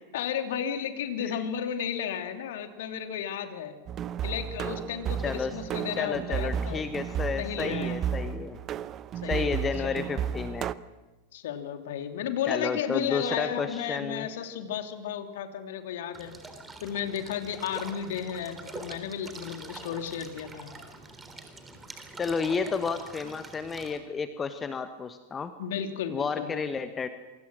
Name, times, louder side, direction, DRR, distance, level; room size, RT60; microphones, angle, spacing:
voice 1, 0.1-3.7 4.2-6.8 7.3-8.0 9.2-10.2 11.3-16.3 16.8-20.7 25.6-26.6, left 8 dB, 55° left, 6 dB, 2.9 m, -33 dB
sound 1, 3.9-10.7, right 8 dB, 30° right, 0.8 m, -33 dB
voice 2, 6.0-8.6 9.3-10.7 12.5-14.3 22.2-25.5 26.1-27.1, left 5 dB, 20° left, 10 dB, 1.3 m, -31 dB
sound 2, 16.1-24.0, right 3 dB, 15° right, 3.7 m, -45 dB
27.5 x 25.0 x 6.3 m, 1.2 s
figure-of-eight pair, 90°, 0 cm